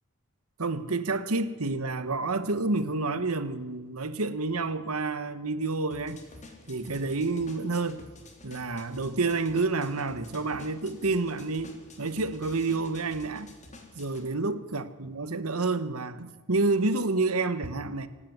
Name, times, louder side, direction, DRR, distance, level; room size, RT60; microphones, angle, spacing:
voice 1, 0.6-6.2 6.7-8.0 8.4-13.5 13.9-18.1, right 3 dB, 70° right, 1.4 m, -29 dB
sound 1, 5.9-14.3, left 2 dB, 35° left, 3.4 m, -50 dB
25.5 x 12.0 x 9.5 m
head